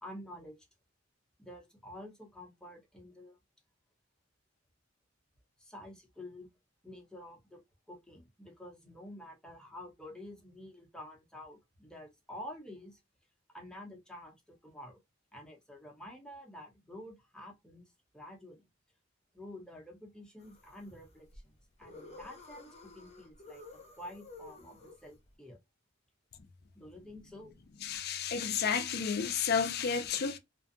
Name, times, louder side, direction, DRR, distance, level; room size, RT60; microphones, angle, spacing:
voice 1, 0.0-0.6 1.4-3.4 5.6-6.5 6.8-7.6 7.9-13.0 13.5-15.0 15.3-18.6 19.3-23.7 24.0-25.6 26.7-27.6, left 1 dB, 5° left, 0.9 m, -49 dB
sound 1, 20.4-25.3, left 2 dB, 35° left, 0.8 m, -53 dB
voice 2, 27.8-30.4, left 6 dB, 50° left, 0.4 m, -31 dB
2.6 x 2.2 x 2.5 m
head